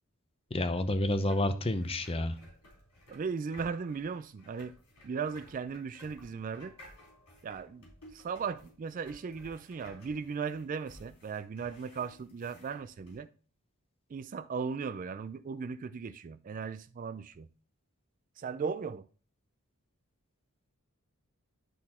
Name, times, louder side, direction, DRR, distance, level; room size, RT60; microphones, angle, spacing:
voice 1, 0.5-2.4, left 1 dB, 25° left, 0.7 m, -29 dB
sound 1, 1.1-13.2, equal, 90° left, 3.8 m, -57 dB
voice 2, 3.1-4.7 5.0-6.7 7.4-13.3 14.1-17.5 18.4-19.0, right 5 dB, 35° right, 0.3 m, -37 dB
11.0 x 4.1 x 4.2 m
head